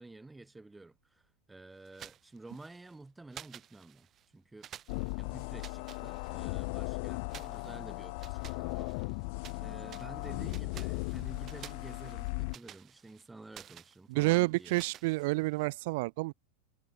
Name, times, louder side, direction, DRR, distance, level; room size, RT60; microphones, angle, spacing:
voice 1, 0.0-4.1 4.3-4.7 5.2-9.0 9.6-14.8, right 2 dB, 5° right, 3.6 m, -51 dB
sound 1, 1.8-3.0 3.3-4.3 4.6-6.7 7.3-9.6 9.9-15.7, right 10 dB, 25° right, 3.2 m, -53 dB
sound 2, 4.9-12.6, left 31 dB, 45° left, 0.8 m, -37 dB
voice 2, 14.1-16.3, right 23 dB, 50° right, 0.4 m, -29 dB
supercardioid pair, 165°, 0 cm